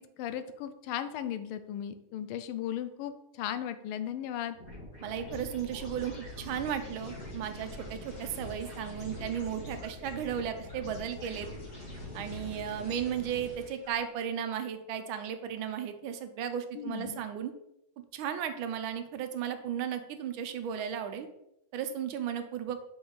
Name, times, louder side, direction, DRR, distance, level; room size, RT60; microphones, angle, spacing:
voice 1, 0.2-4.6 16.7-17.2, left 10 dB, 85° left, 11 dB, 1.5 m, -36 dB
sound 1, 4.5-14.0, left 1 dB, 35° left, 2.4 m, -44 dB
voice 2, 5.0-11.5 12.1-17.5 18.1-21.3 21.7-22.8, right 8 dB, 80° right, 9 dB, 1.4 m, -35 dB
5.7 x 5.2 x 3.9 m, 0.82 s
omnidirectional pair, 2.3 m